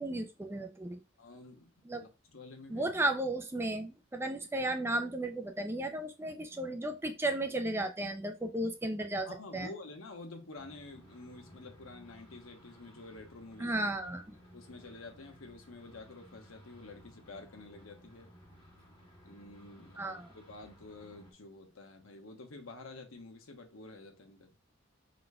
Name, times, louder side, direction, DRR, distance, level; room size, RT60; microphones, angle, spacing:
voice 1, 0.0-1.0 1.9-2.0 2.7-9.3 9.5-9.7 13.6-14.2 20.0-20.3, right 1 dB, 10° right, 0.4 m, -34 dB
voice 2, 1.2-2.9 9.2-13.8 14.5-18.3 19.2-24.6, left 2 dB, 85° left, 1.0 m, -49 dB
sound 1, 10.6-21.3, equal, 25° left, 1.5 m, -58 dB
5.0 x 4.0 x 2.3 m
head